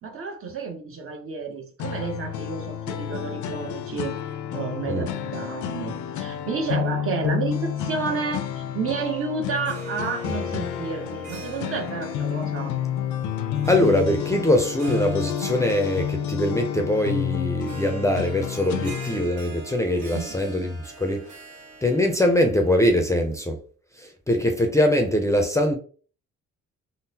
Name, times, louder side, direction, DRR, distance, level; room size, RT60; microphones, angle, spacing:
voice 1, 0.0-4.1 4.5-12.8 20.1-20.4, right 4 dB, 45° right, 0.8 m, -31 dB
sound 1, 1.8-19.2, left 9 dB, 75° left, 0.5 m, -30 dB
Harp, 9.5-23.3, right 2 dB, 75° right, 1.1 m, -41 dB
voice 2, 13.6-21.3 21.8-23.6 24.0-25.8, left 1 dB, 10° left, 0.5 m, -22 dB
3.6 x 2.0 x 2.7 m
cardioid pair, 90°, 30 cm